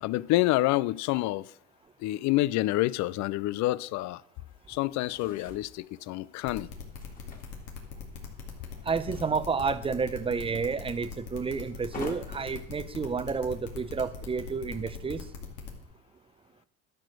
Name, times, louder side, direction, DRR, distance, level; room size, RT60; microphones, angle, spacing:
voice 1, 0.0-1.5 2.0-4.2 4.7-6.7, left 17 dB, 50° left, 0.5 m, -28 dB
sound 1, 4.5-14.8, left 3 dB, 20° left, 2.1 m, -50 dB
sound 2, 6.5-15.8, left 6 dB, 65° left, 2.3 m, -41 dB
voice 2, 8.8-15.3, right 5 dB, 15° right, 0.6 m, -30 dB
12.0 x 4.9 x 6.2 m
supercardioid pair, 95°, 37 cm